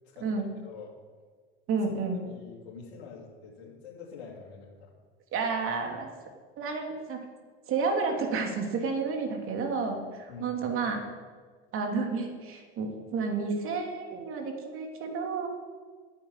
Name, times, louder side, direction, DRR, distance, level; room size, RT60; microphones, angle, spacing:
voice 1, 0.6-1.0 2.3-4.9 10.3-10.6, left 5 dB, 80° left, -6 dB, 3.0 m, -46 dB
voice 2, 1.7-2.2 5.3-6.1 6.6-7.2 7.7-11.0 11.7-15.5, right 4 dB, 45° right, 2 dB, 3.0 m, -31 dB
11.0 x 8.6 x 8.9 m, 1.5 s
hypercardioid pair, 90°, 31 cm